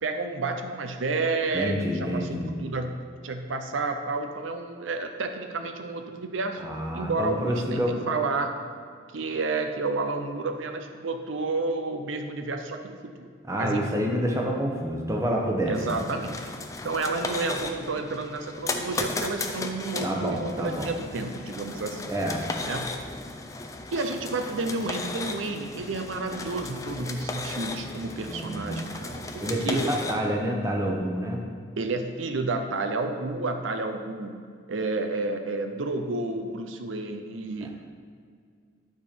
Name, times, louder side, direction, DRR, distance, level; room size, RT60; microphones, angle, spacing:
voice 1, 0.0-6.6 6.9-8.6 9.1-13.3 13.6-14.0 15.7-16.5 16.8-22.1 22.6-23.0 23.9-29.8 31.8-34.4 34.7-37.7, right 3 dB, 85° right, 6 dB, 0.7 m, -31 dB
voice 2, 1.5-2.5 6.6-7.9 13.5-16.1 20.0-20.9 22.1-22.4 28.3-28.9 29.4-31.4 37.6-37.7, equal, 15° right, 0 dB, 0.9 m, -28 dB
sound 1, 15.7-30.2, left 3 dB, 15° left, 0.4 m, -35 dB
11.5 x 4.4 x 5.2 m, 2.1 s
head